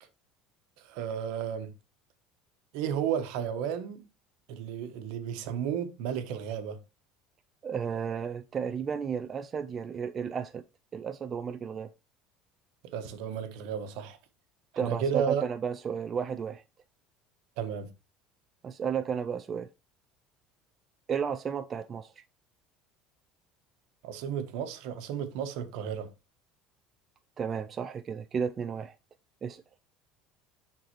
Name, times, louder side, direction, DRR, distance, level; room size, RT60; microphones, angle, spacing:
voice 1, 0.8-1.7 2.7-4.0 4.5-6.8 12.8-14.2 14.7-15.4 17.6-17.9 24.0-26.1, right 8 dB, 75° right, 1.1 m, -33 dB
voice 2, 7.6-10.6 10.9-11.9 14.8-16.6 18.6-19.7 21.1-22.2 27.4-29.0 29.4-29.6, right 7 dB, 30° right, 0.4 m, -33 dB
11.0 x 4.0 x 3.0 m
cardioid pair, 130°, 0 cm